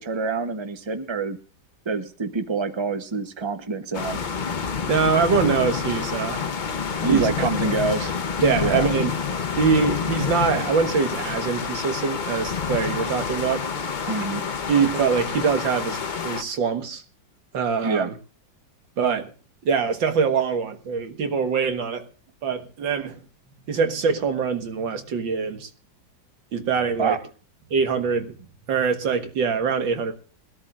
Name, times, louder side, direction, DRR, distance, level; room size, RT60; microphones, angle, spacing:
voice 1, 0.0-1.4 1.9-4.2 7.0-8.2 8.6-8.9 14.1-14.6 17.8-18.1 27.0-27.2, right 4 dB, 30° right, 9 dB, 0.5 m, -26 dB
sound 1, 3.9-16.4, left 6 dB, 50° left, 0.5 m, -28 dB
voice 2, 4.9-6.4 7.1-7.3 8.4-9.1 9.6-13.6 14.7-16.0 16.2-17.0 17.5-18.1 19.0-19.3 19.7-22.0 22.4-23.2 23.7-25.7 26.5-27.2 27.7-28.3 28.7-30.1, right 5 dB, 75° right, 7 dB, 2.1 m, -23 dB
22.0 x 13.0 x 2.5 m, 0.39 s
omnidirectional pair, 2.1 m